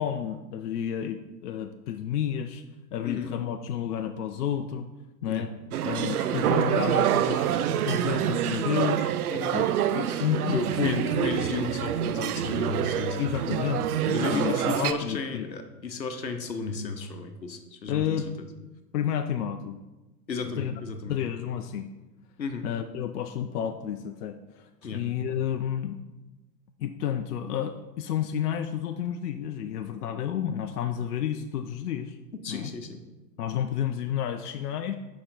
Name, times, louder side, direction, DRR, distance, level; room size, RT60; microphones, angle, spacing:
voice 1, 0.0-2.6 2.9-4.9 5.2-5.5 5.8-9.1 9.5-11.3 13.2-15.5 17.9-18.3 18.9-19.8 20.5-20.7 21.1-21.9 22.6-26.0 26.8-32.2 32.5-32.7 33.4-35.0, left 9 dB, 65° left, 8 dB, 0.6 m, -31 dB
sound 1, 5.7-14.9, right 10 dB, 65° right, 0.5 m, -26 dB
voice 2, 10.5-13.2 14.1-18.2 20.3-21.1 22.4-22.7 24.8-25.0 32.4-33.0, left 4 dB, 90° left, 7 dB, 0.9 m, -34 dB
6.8 x 5.2 x 3.9 m, 1.1 s
figure-of-eight pair, 105°, 50 cm